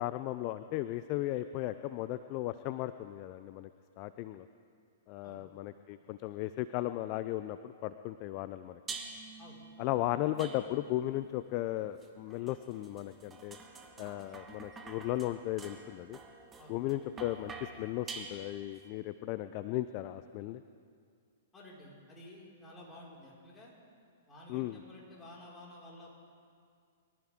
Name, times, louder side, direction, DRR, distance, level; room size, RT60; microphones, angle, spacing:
voice 1, 0.0-3.7 4.0-4.5 5.1-8.8 9.8-13.6 14.0-16.2 16.7-20.6 24.5-24.8, left 15 dB, 40° left, 12 dB, 0.5 m, -36 dB
sound 1, 8.9-9.4 10.4-11.1 12.0-18.8, right 4 dB, 20° right, 1.6 m, -47 dB
Bass guitar, 8.9-15.2, right 5 dB, 80° right, 2.4 m, -60 dB
voice 2, 21.5-23.7 24.3-26.1, left 1 dB, 15° left, -5 dB, 5.2 m, -52 dB
23.0 x 14.0 x 3.7 m, 2.2 s
hypercardioid pair, 115°, 0 cm